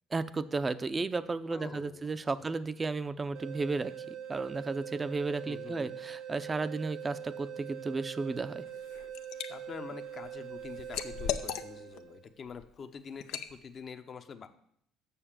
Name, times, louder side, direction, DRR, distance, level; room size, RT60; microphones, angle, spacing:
voice 1, 0.1-8.6, right 3 dB, 25° right, 13 dB, 0.6 m, -34 dB
voice 2, 1.5-2.1 2.4-2.6 5.4-5.9 9.5-14.5, left 6 dB, 45° left, 9 dB, 0.9 m, -46 dB
sound 1, 3.3-12.3, right 9 dB, 65° right, 0.8 m, -43 dB
Liquid, 8.7-9.5 9.9-12.0 12.5-12.7 13.2-13.5, left 10 dB, 75° left, 0.6 m, -37 dB
6.9 x 6.4 x 7.4 m, 0.70 s
supercardioid pair, 75°, 0 cm